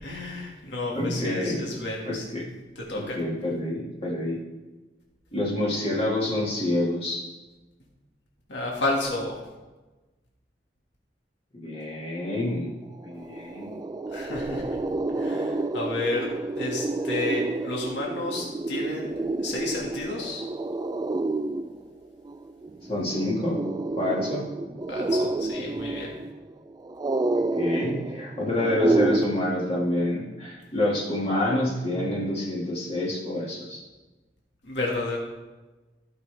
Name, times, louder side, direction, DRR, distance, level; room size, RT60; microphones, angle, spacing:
voice 1, 0.0-2.2 2.8-3.2 8.5-9.3 14.1-14.8 15.2-16.3 16.6-19.1 19.4-20.4 24.9-26.2 34.6-35.2, left 2 dB, 75° left, -3 dB, 2.1 m, -31 dB
voice 2, 1.0-2.4 3.0-4.4 5.3-7.2 11.5-12.7 13.0-13.8 22.9-23.6 24.0-24.4 27.3-33.8, left 1 dB, 35° left, -5 dB, 2.0 m, -28 dB
sound 1, 12.7-12.8 13.1-29.2, right 2 dB, 20° right, 0.3 m, -29 dB
16.5 x 5.9 x 3.5 m, 1.2 s
head